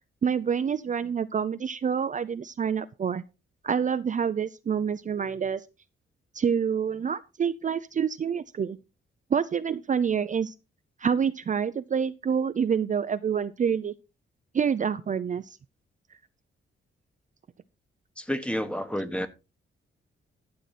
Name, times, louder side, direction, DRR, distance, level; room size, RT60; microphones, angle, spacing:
voice 1, 0.2-3.2 3.6-5.6 6.3-8.8 9.3-10.5 11.0-13.9 14.5-15.6, right 7 dB, 35° right, 0.5 m, -27 dB
voice 2, 18.2-19.3, equal, 5° left, 1.1 m, -30 dB
12.0 x 7.7 x 4.1 m
wide cardioid pair, 150°, 21 cm